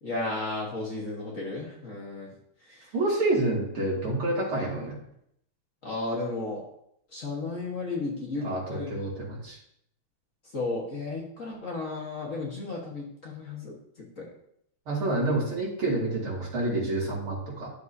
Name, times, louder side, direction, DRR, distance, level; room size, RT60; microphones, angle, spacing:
voice 1, 0.0-2.3 2.7-2.8 5.8-6.6 7.1-8.9 10.5-14.2, left 3 dB, 40° left, -3 dB, 1.5 m, -34 dB
voice 2, 2.9-5.0 8.4-9.6 14.9-17.7, right 2 dB, 75° right, -4 dB, 3.2 m, -28 dB
11.5 x 6.8 x 2.7 m, 0.74 s
omnidirectional pair, 2.4 m